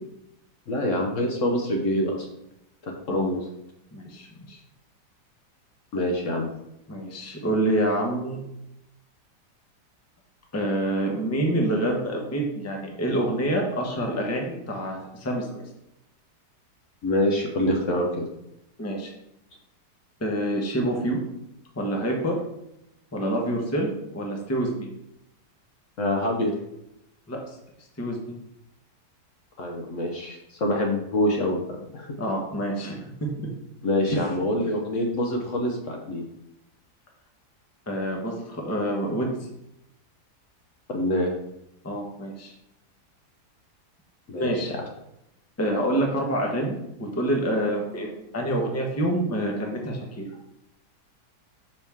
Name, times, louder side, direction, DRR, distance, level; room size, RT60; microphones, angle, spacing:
voice 1, 0.7-2.3 2.8-3.4 5.9-6.5 17.0-18.2 26.0-26.5 29.6-31.6 31.9-32.1 33.8-36.2 40.9-41.3 44.3-44.8, left 1 dB, 55° left, 1 dB, 1.1 m, -25 dB
voice 2, 3.9-4.6 6.9-8.4 10.5-15.6 18.8-19.1 20.2-21.2 21.7-22.4 23.1-24.9 27.3-27.4 28.0-28.3 32.2-33.0 33.4-33.5 37.9-39.3 41.8-42.5 44.3-44.7 45.6-50.3, right 1 dB, 10° left, 0 dB, 0.8 m, -27 dB
5.9 x 5.4 x 3.5 m, 0.82 s
omnidirectional pair, 1.7 m